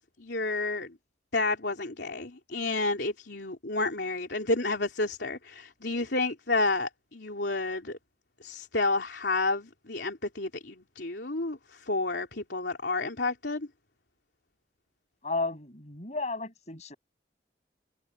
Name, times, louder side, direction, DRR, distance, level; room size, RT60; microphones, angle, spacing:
voice 1, 0.2-0.9 1.3-8.0 8.4-13.7, left 3 dB, 75° left, 3.3 m, -30 dB
voice 2, 15.2-17.0, left 3 dB, 40° left, 7.2 m, -33 dB
head